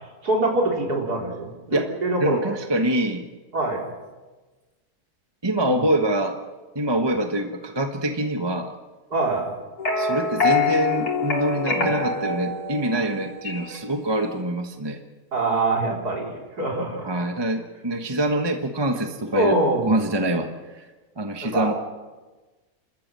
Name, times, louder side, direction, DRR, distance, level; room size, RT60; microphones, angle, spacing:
voice 1, 0.2-2.4 3.5-3.9 5.7-5.9 7.1-7.2 9.1-9.5 11.7-11.9 15.3-17.1 19.3-19.9 21.4-21.7, right 2 dB, 85° right, -1 dB, 4.5 m, -24 dB
voice 2, 2.2-3.2 5.4-6.4 6.7-8.7 10.0-15.0 17.0-19.6 19.9-20.8 21.2-21.7, right 1 dB, 20° right, 5 dB, 1.2 m, -25 dB
sound 1, 9.8-13.8, left 4 dB, 80° left, 4.2 m, -25 dB
29.5 x 13.5 x 7.6 m, 1.2 s
omnidirectional pair, 1.6 m